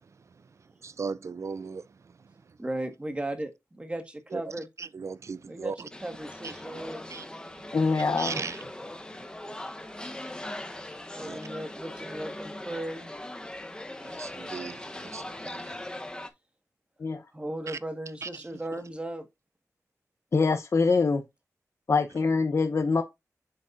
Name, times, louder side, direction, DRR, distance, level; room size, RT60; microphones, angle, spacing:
voice 1, 0.8-1.8 4.3-4.4 4.8-5.7 7.1-7.2 8.2-8.5 11.2-11.4 14.2-15.7 18.2-18.3, right 5 dB, 55° right, 0.4 m, -36 dB
voice 2, 2.6-4.7 5.4-7.1 11.1-13.1 17.3-19.3, right 1 dB, 20° right, 1.6 m, -36 dB
sound 1, 5.9-16.3, left 1 dB, 15° left, 0.9 m, -40 dB
voice 3, 7.7-8.4 17.0-17.2 20.3-21.2 21.9-23.0, left 4 dB, 55° left, 0.8 m, -24 dB
7.2 x 6.9 x 2.5 m
wide cardioid pair, 110°, 6 cm